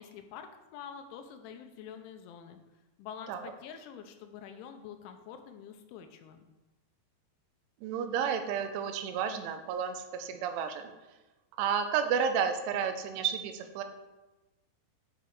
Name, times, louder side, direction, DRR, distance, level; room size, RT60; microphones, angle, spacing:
voice 1, 0.0-2.6 3.0-6.5, left 8 dB, 85° left, 7 dB, 3.1 m, -46 dB
voice 2, 7.8-10.9 11.6-13.8, right 7 dB, 90° right, 7 dB, 3.2 m, -31 dB
8.9 x 5.7 x 4.7 m, 1.1 s
omnidirectional pair, 5.4 m